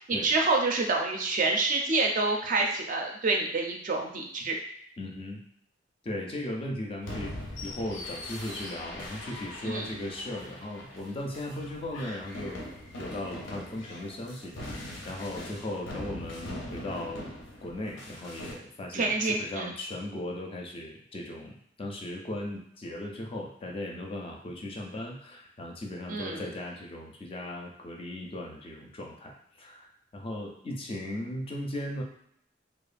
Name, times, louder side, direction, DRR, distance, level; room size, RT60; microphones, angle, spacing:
voice 1, 0.0-4.6 9.6-9.9 18.9-19.7 26.1-26.4, right 3 dB, 45° right, 2 dB, 0.4 m, -27 dB
voice 2, 5.0-5.4 6.0-7.4 7.6-17.3 17.6-32.0, left 1 dB, 30° left, 0 dB, 0.4 m, -37 dB
sound 1, 7.0-18.5, left 1 dB, 90° left, 0.6 m, -41 dB
2.8 x 2.2 x 2.4 m, 0.70 s
head